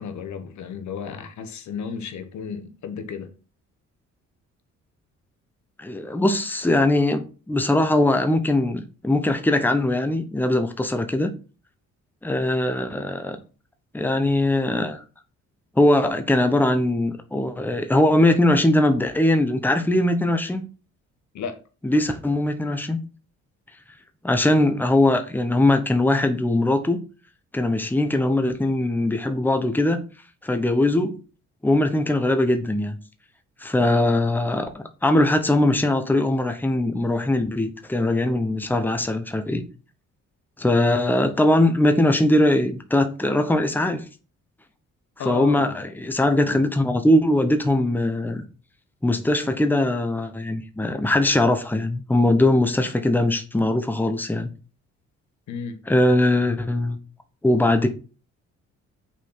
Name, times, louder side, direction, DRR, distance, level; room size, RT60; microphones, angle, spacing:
voice 1, 0.0-3.3 21.3-21.6 45.2-45.8 46.4-46.6 55.5-55.8, left 6 dB, 70° left, 1.2 m, -33 dB
voice 2, 5.8-11.3 12.2-13.4 13.9-15.0 15.8-20.6 21.8-23.0 24.2-27.0 27.5-30.0 30.4-31.2 31.6-32.9 33.6-39.6 40.6-44.1 45.2-48.4 49.0-54.5 55.9-57.0 57.4-57.9, left 1 dB, 5° left, 1.0 m, -21 dB
6.3 x 4.2 x 5.6 m
cardioid pair, 90°, 30 cm